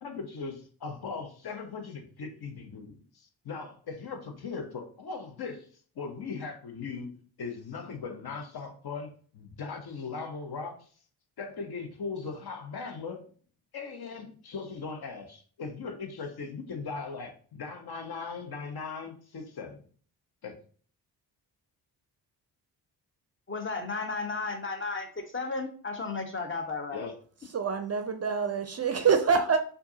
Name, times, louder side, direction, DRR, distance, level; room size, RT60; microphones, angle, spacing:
voice 1, 0.0-5.7 6.0-10.9 11.4-13.3 13.7-19.8 20.4-20.6 26.9-27.1, left 4 dB, 50° left, 5 dB, 1.0 m, -39 dB
voice 2, 23.5-27.1, left 3 dB, 25° left, 5 dB, 1.0 m, -34 dB
voice 3, 27.5-29.6, right 5 dB, 30° right, 7 dB, 0.5 m, -25 dB
4.5 x 2.6 x 2.8 m, 0.44 s
hypercardioid pair, 45°, 49 cm